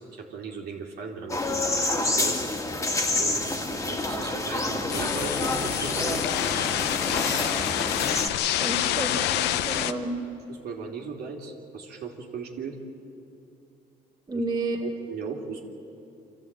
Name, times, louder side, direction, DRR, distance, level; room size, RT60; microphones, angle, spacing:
voice 1, 0.0-2.8 3.1-3.4 3.7-6.3 10.5-12.8 14.3-14.4 14.8-15.6, right 5 dB, 70° right, -1 dB, 2.9 m, -37 dB
sound 1, 1.3-8.3, left 2 dB, 15° left, 2.0 m, -28 dB
sound 2, 4.9-9.9, left 12 dB, 85° left, 0.8 m, -27 dB
voice 2, 8.6-10.1 14.3-14.8, right 2 dB, 25° right, -1 dB, 2.7 m, -30 dB
25.5 x 14.5 x 8.9 m, 2.8 s
cardioid pair, 110°, 17 cm